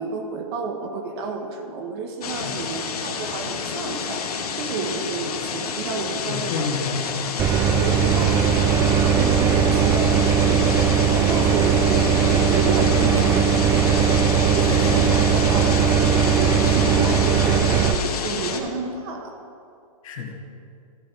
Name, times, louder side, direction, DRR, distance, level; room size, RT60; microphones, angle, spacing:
voice 1, 0.0-6.7 7.0-7.2 7.8-10.7 11.1-13.7 14.5-19.3, right 4 dB, 45° right, 3 dB, 1.3 m, -31 dB
sound 1, 2.2-18.6, left 6 dB, 80° left, 1.3 m, -29 dB
voice 2, 6.3-7.3 7.6-7.9 13.0-13.2 14.7-14.9 20.0-20.3, left 5 dB, 60° left, -1 dB, 2.2 m, -30 dB
sound 2, 7.4-18.0, right 7 dB, 15° right, 0.3 m, -19 dB
15.0 x 6.6 x 4.5 m, 2.4 s
hypercardioid pair, 145°, 19 cm